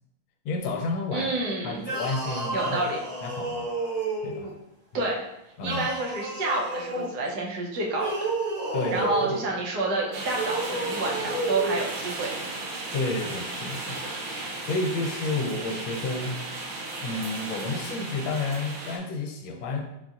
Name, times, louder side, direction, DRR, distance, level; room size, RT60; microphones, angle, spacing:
voice 1, 0.4-1.3 1.6-2.8 3.2-3.7 4.2-4.5 5.6-5.9 8.7-9.4 12.9-14.1 14.6-16.4 17.0-19.8, left 3 dB, 70° left, 2 dB, 1.3 m, -30 dB
voice 2, 1.1-1.8 2.5-3.0 4.9-5.3 5.6-8.1 8.9-12.3, right 2 dB, 65° right, -1 dB, 1.1 m, -29 dB
sound 1, 1.8-4.5 5.6-7.1 7.9-9.4 10.3-11.8, right 2 dB, 35° right, 1.1 m, -31 dB
sound 2, 10.1-19.0, right 2 dB, 85° right, 1.7 m, -35 dB
4.3 x 3.9 x 2.4 m, 0.88 s
omnidirectional pair, 2.4 m